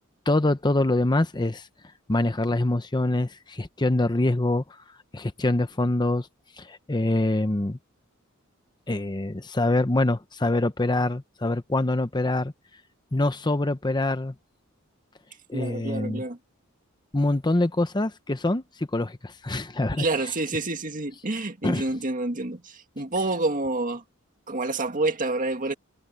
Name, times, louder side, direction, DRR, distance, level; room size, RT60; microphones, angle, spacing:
voice 1, 0.3-1.7 2.1-4.8 5.1-6.3 6.6-7.8 8.9-12.5 13.1-14.3 15.5-16.2 17.1-20.0 21.6-21.9, left 2 dB, 20° left, 0.8 m, -25 dB
voice 2, 15.5-16.4 20.0-24.0 24.5-25.7, right 2 dB, 40° right, 2.0 m, -28 dB
head